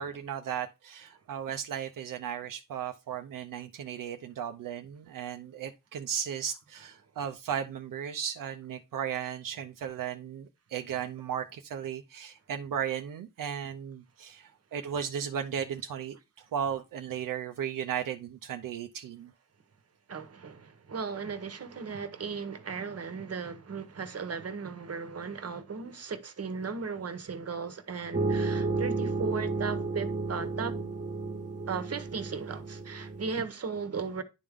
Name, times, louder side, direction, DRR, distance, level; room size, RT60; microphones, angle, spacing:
voice 1, 0.0-19.3, right 8 dB, 80° right, 0.6 m, -36 dB
voice 2, 20.1-30.7 31.7-34.2, right 5 dB, 50° right, 1.0 m, -36 dB
sound 1, 28.1-33.4, right 3 dB, 25° right, 1.1 m, -32 dB
10.0 x 3.5 x 3.5 m
cardioid pair, 55°, 32 cm